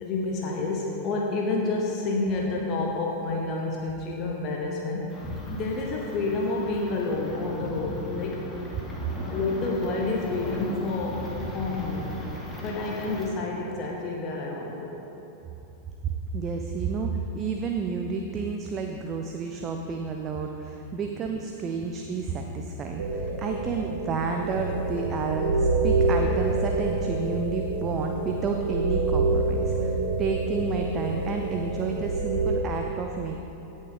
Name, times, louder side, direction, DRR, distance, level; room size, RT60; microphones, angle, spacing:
voice 1, 0.0-5.2 5.5-8.5 9.3-12.2 12.6-15.1, left 3 dB, 35° left, -1 dB, 1.1 m, -29 dB
sound 1, 5.1-13.3, left 1 dB, 15° left, 1.7 m, -37 dB
voice 2, 16.3-33.4, right 5 dB, 25° right, 3 dB, 0.6 m, -31 dB
sound 2, 23.0-32.6, right 3 dB, 65° right, 1.0 m, -27 dB
16.5 x 6.5 x 3.7 m, 3.0 s
figure-of-eight pair, 90°, 0 cm